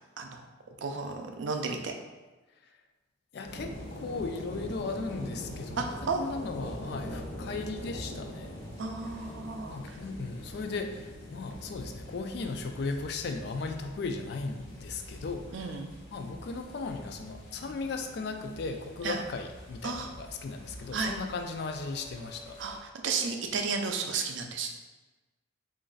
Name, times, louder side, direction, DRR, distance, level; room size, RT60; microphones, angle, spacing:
voice 1, 0.8-1.9 5.8-6.2 8.8-9.8 15.5-15.9 19.0-19.2 19.8-20.1 20.9-21.1 22.6-22.8 23.0-24.7, right 4 dB, 65° right, 4 dB, 0.4 m, -32 dB
voice 2, 3.3-8.5 9.7-15.8 16.1-22.6, left 3 dB, 55° left, 6 dB, 0.3 m, -37 dB
sound 1, 3.4-22.8, equal, 85° left, 1.3 m, -44 dB
3.1 x 2.5 x 3.8 m, 1.2 s
head